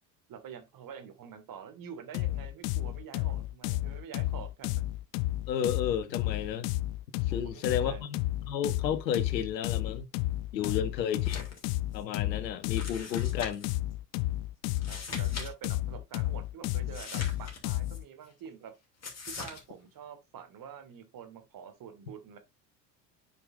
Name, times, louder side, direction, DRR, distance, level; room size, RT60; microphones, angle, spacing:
voice 1, 0.3-4.8 7.3-8.0 10.6-10.8 14.8-18.7 19.3-22.4, right 8 dB, 40° right, 1.9 m, -47 dB
sound 1, 2.1-18.0, left 16 dB, 50° left, 0.5 m, -32 dB
voice 2, 5.5-6.7 7.3-8.2 8.5-10.1 10.5-11.4 11.9-13.7, left 9 dB, 80° left, 1.1 m, -32 dB
sound 2, 11.2-11.6 11.9-12.0 12.7-13.7 14.7-15.5 15.7-15.8 16.9-18.0 19.0-19.6, left 4 dB, 30° left, 2.8 m, -42 dB
8.6 x 5.2 x 2.6 m
hypercardioid pair, 75°, 49 cm